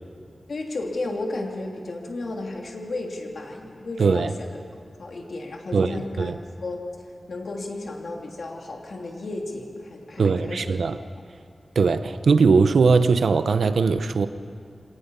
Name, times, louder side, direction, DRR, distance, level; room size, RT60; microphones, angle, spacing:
voice 1, 0.5-4.6 5.0-6.3 6.6-7.0 7.3-10.8, left 2 dB, 70° left, 1 dB, 2.8 m, -33 dB
voice 2, 4.0-4.3 5.7-6.4 10.2-11.0 11.8-14.3, right 4 dB, 90° right, 11 dB, 0.8 m, -20 dB
25.5 x 18.0 x 5.6 m, 2.4 s
wide cardioid pair, 95°, 0 cm